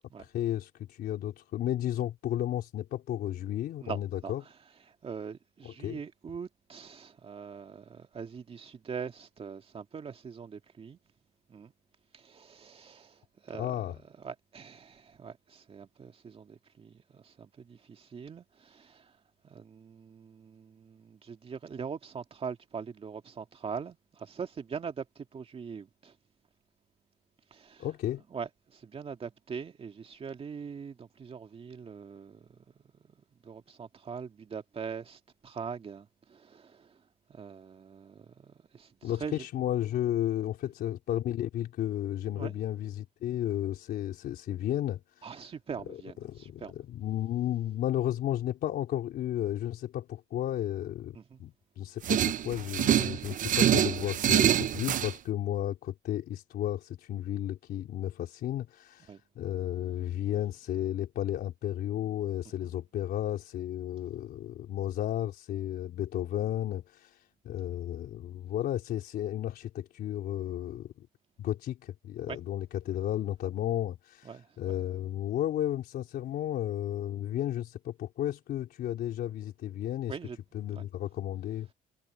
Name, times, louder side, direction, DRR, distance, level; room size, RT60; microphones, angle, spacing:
voice 1, 0.2-4.4 5.6-6.0 13.5-14.0 27.8-28.2 39.0-45.4 46.2-71.1 71.4-80.2 80.5-81.7, left 12 dB, 65° left, 3.7 m, -33 dB
voice 2, 3.8-4.3 5.0-11.0 11.5-11.7 12.1-13.7 14.2-19.1 19.4-26.1 27.5-27.9 28.3-32.6 33.4-37.0 37.3-39.5 42.4-42.6 45.2-46.8 51.1-51.4 59.1-59.2 62.6-62.7 72.3-72.4 74.2-74.5 80.1-80.4 80.7-80.9, right 6 dB, 35° right, 2.3 m, -42 dB
sound 1, 52.0-55.1, right 10 dB, 50° right, 0.9 m, -25 dB
cardioid pair, 110°, 17 cm